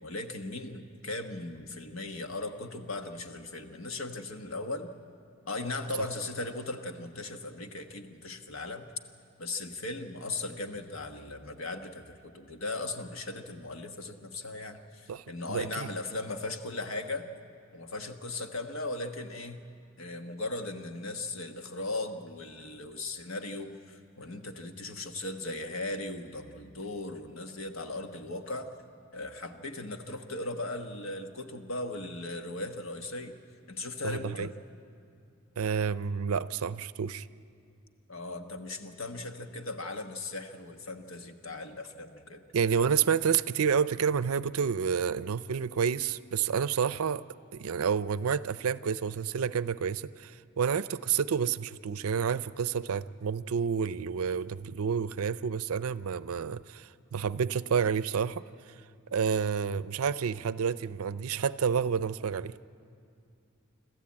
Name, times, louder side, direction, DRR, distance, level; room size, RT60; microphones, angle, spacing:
voice 1, 0.0-4.9 5.5-8.9 9.4-17.3 17.7-19.6 20.0-28.7 29.1-33.3 33.7-34.5 38.1-42.4, left 2 dB, 65° left, 6 dB, 1.3 m, -38 dB
voice 2, 15.1-15.9 34.0-34.5 35.6-37.3 42.5-47.2 47.5-58.4 59.1-62.5, right 6 dB, 85° right, 16 dB, 0.5 m, -29 dB
26.5 x 14.0 x 8.6 m, 2.5 s
head